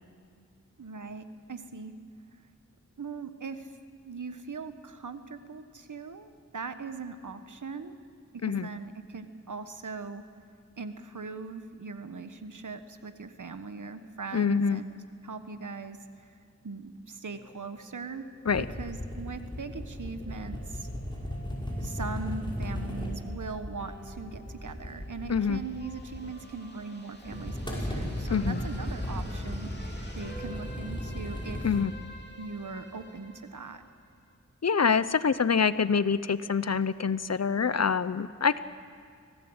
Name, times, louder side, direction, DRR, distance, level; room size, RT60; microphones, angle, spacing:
voice 1, 0.8-1.9 3.0-3.8 4.0-7.9 8.3-10.2 10.8-15.0 15.2-16.3 16.6-18.3 18.6-20.9 21.8-29.7 30.1-31.7 32.4-33.8, right 4 dB, 80° right, 9 dB, 1.3 m, -40 dB
voice 2, 14.3-14.8 18.5-18.7 25.3-25.6 28.3-28.6 31.6-31.9 34.6-38.6, left 6 dB, 60° left, 15 dB, 0.8 m, -26 dB
sound 1, 17.3-34.3, equal, 35° left, 3.4 m, -50 dB
sound 2, 18.5-26.6 27.2-31.8, equal, 15° left, 5.8 m, -36 dB
25.5 x 17.5 x 8.0 m, 2.3 s
wide cardioid pair, 55°, 30 cm